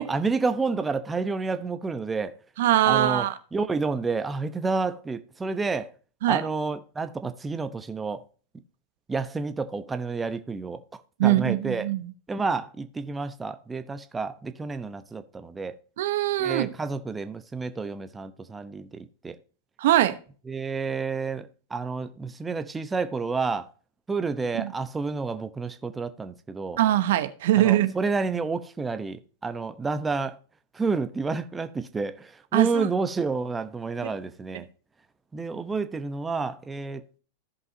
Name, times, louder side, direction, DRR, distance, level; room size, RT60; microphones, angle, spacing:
voice 1, 0.0-2.3 2.8-5.9 6.3-8.2 9.1-11.9 12.3-15.7 16.4-19.4 20.5-23.7 24.1-26.8 27.5-30.4 30.7-34.7 35.3-37.2, right 4 dB, 15° right, 0.9 m, -30 dB
voice 2, 2.6-3.3 6.2-6.4 11.2-12.1 16.0-16.7 19.8-20.2 24.6-24.7 26.8-27.9 32.5-32.9, right 14 dB, 70° right, 1.0 m, -22 dB
16.0 x 5.4 x 2.8 m
hypercardioid pair, 110°, 0 cm